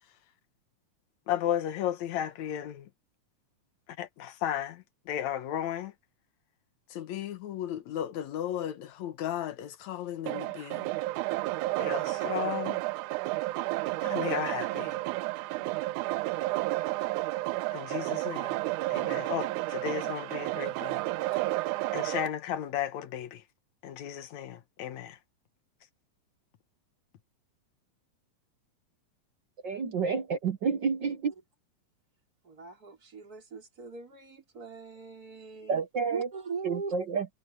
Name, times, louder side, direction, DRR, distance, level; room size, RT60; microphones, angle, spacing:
voice 1, 1.3-2.9 4.0-5.9 6.9-10.9 11.8-12.8 14.0-15.0 17.7-18.6 18.9-21.0 21.9-23.4 23.8-25.2, left 10 dB, 70° left, 2.3 m, -34 dB
sound 1, 10.3-22.3, right 18 dB, 85° right, 2.1 m, -31 dB
voice 2, 29.6-31.3 35.7-36.3 36.6-37.3, right 5 dB, 65° right, 1.1 m, -29 dB
voice 3, 32.4-35.8 36.1-36.9, right 5 dB, 30° right, 5.0 m, -40 dB
omnidirectional pair, 3.5 m